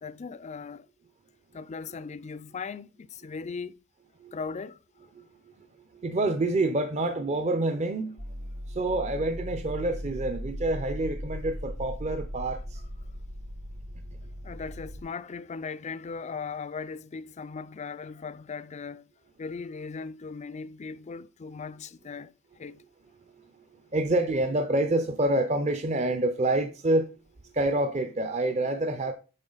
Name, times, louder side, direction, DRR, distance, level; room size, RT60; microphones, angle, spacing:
voice 1, 0.0-0.9 1.5-3.8 4.3-4.8 14.4-19.1 19.4-22.8, left 5 dB, 30° left, 0.4 m, -38 dB
voice 2, 5.9-8.2 8.7-12.8 23.4-23.6 23.9-27.1 27.4-29.1, right 2 dB, 30° right, 0.6 m, -27 dB
sound 1, 8.2-15.0, equal, 75° right, 3.6 m, -38 dB
8.8 x 6.1 x 3.9 m
head